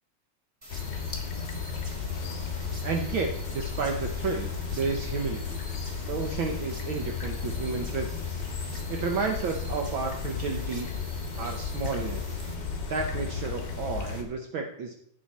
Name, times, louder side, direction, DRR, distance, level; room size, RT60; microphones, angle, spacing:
sound 1, 0.6-12.5, equal, 25° right, 0.6 m, -47 dB
sound 2, 0.7-14.2, left 5 dB, 40° left, 2.0 m, -34 dB
voice 1, 2.8-5.6 6.1-8.4 8.9-10.9 11.4-12.4 12.9-14.9, right 4 dB, 80° right, 4 dB, 1.1 m, -32 dB
16.0 x 6.1 x 4.2 m, 0.71 s
omnidirectional pair, 3.4 m